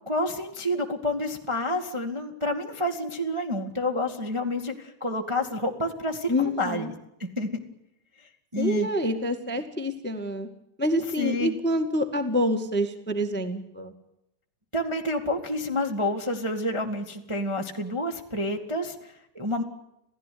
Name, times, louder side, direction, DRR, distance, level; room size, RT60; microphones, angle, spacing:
voice 1, 0.0-6.9 7.2-7.5 8.5-8.9 11.2-11.6 14.7-19.6, left 1 dB, 15° right, 2 dB, 1.4 m, -29 dB
voice 2, 6.3-6.9 8.5-10.5 10.8-13.9, equal, 5° left, 8 dB, 1.4 m, -27 dB
27.5 x 16.5 x 9.5 m, 0.82 s
omnidirectional pair, 3.4 m